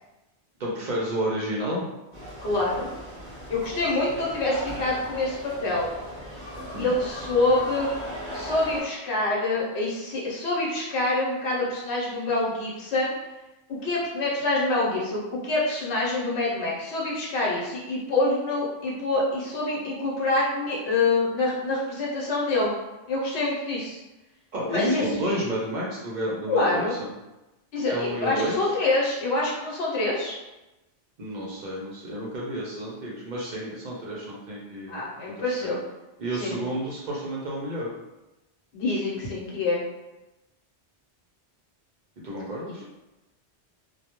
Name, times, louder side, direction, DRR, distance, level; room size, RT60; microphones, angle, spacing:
voice 1, 0.6-1.9 6.7-6.9 24.5-27.1 27.9-28.8 31.2-35.0 35.4-35.7 36.2-37.9 42.2-42.8, equal, 55° right, -4 dB, 0.5 m, -30 dB
sound 1, 2.1-8.8, equal, 10° right, 1.0 m, -38 dB
voice 2, 2.4-2.9 3.5-5.9 6.7-7.9 8.3-13.1 13.7-22.7 23.1-24.0 24.7-25.4 26.5-26.9 27.7-30.4 34.9-35.8 36.4-36.6 38.7-39.8, left 2 dB, 70° left, -4 dB, 1.0 m, -26 dB
2.2 x 2.1 x 2.8 m, 1.0 s
omnidirectional pair, 1.1 m